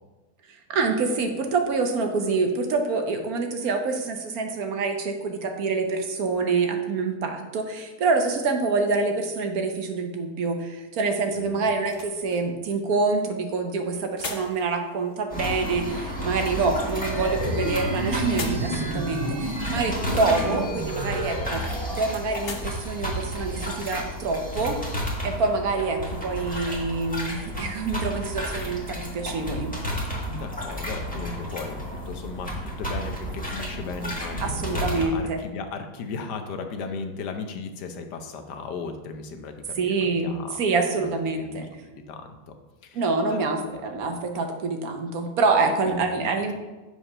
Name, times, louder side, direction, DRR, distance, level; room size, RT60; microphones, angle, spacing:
voice 1, 0.7-24.8 25.2-29.7 34.4-35.4 39.8-40.3 40.6-41.7 42.9-46.5, right 4 dB, 65° right, 5 dB, 1.3 m, -26 dB
sound 1, 11.0-24.5, left 4 dB, 45° left, 0.9 m, -45 dB
voice 2, 11.3-11.8 30.3-40.6 41.0-41.7 41.9-42.5 42.8-44.1 45.8-46.3, left 4 dB, 85° left, 6 dB, 1.4 m, -36 dB
sound 2, 15.3-35.0, equal, 5° left, 1.5 m, -32 dB
sound 3, 17.0-22.0, right 1 dB, 20° right, 2.1 m, -30 dB
7.5 x 4.9 x 5.4 m, 1.2 s
omnidirectional pair, 1.8 m